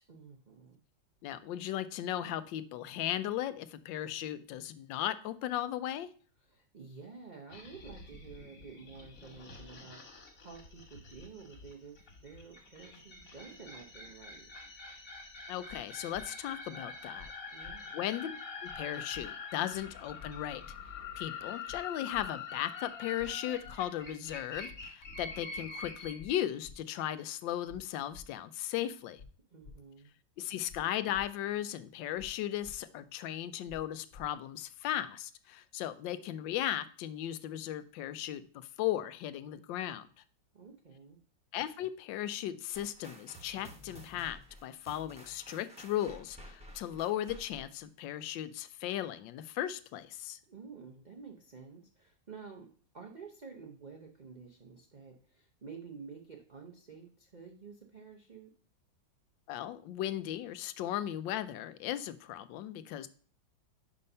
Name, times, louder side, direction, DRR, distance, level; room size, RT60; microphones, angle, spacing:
voice 1, 0.1-0.8 6.4-14.5 17.5-18.0 29.5-30.1 40.5-41.2 50.5-52.7 52.9-58.5, right 5 dB, 75° right, 1 dB, 0.4 m, -50 dB
voice 2, 1.2-6.1 15.5-17.3 17.9-18.3 18.6-20.6 21.2-29.2 30.4-40.1 41.5-50.4 59.5-63.1, left 12 dB, 80° left, 13 dB, 1.2 m, -36 dB
sound 1, 7.5-26.4, left 5 dB, 45° left, 1.9 m, -45 dB
sound 2, 15.7-15.8 16.1-16.2 17.2-17.3 17.6-17.7 18.7-18.8 19.1-19.2 20.2-20.3 20.6-20.7 21.7-21.8 22.1-22.3 23.2-23.3 23.6-23.8 24.7-24.8 25.1-25.2 26.2-26.3 26.6-26.8 27.7-27.8 28.1-28.2 29.2-29.3 29.6-29.7 30.7-30.8 31.1-31.2 32.2-32.3 32.6-32.7 33.7-33.8 34.1-34.2, left 5 dB, 65° left, 0.6 m, -51 dB
sound 3, 42.7-47.8, equal, 5° right, 0.7 m, -52 dB
5.4 x 5.3 x 5.4 m, 0.44 s
omnidirectional pair, 2.0 m